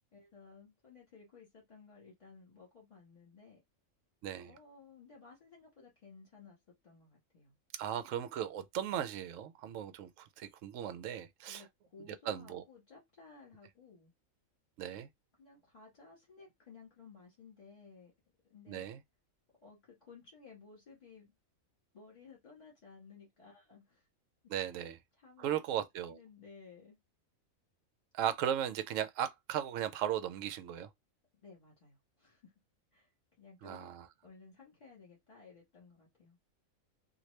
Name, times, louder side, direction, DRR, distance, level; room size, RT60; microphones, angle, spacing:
voice 1, 0.1-3.6 4.4-6.6 6.8-7.6 11.5-14.1 15.4-18.1 18.5-18.9 19.6-21.3 21.9-24.0 24.7-24.8 25.1-25.6 26.0-27.0 31.4-32.5 32.9-33.1 33.4-33.9 34.2-36.4, left 4 dB, 30° left, 1.6 m, -57 dB
voice 2, 7.7-11.6 12.3-12.6 14.8-15.1 18.7-19.0 24.5-25.0 25.4-26.2 28.1-30.9 33.6-34.0, right 10 dB, 70° right, 0.9 m, -37 dB
2.9 x 2.5 x 3.2 m
omnidirectional pair, 1.4 m